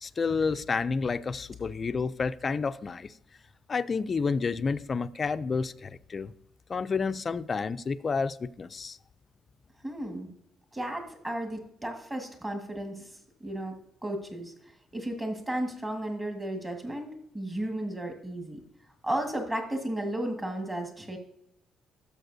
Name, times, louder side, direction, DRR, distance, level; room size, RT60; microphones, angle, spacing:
voice 1, 0.0-3.1 3.7-6.3 6.7-9.0, left 5 dB, 30° left, 0.3 m, -30 dB
voice 2, 9.8-10.3 10.7-13.1 13.4-13.8 14.0-14.5 14.9-18.6 19.0-21.2, right 1 dB, 15° right, 1.6 m, -34 dB
12.5 x 6.8 x 2.6 m
cardioid pair, 145°, 0 cm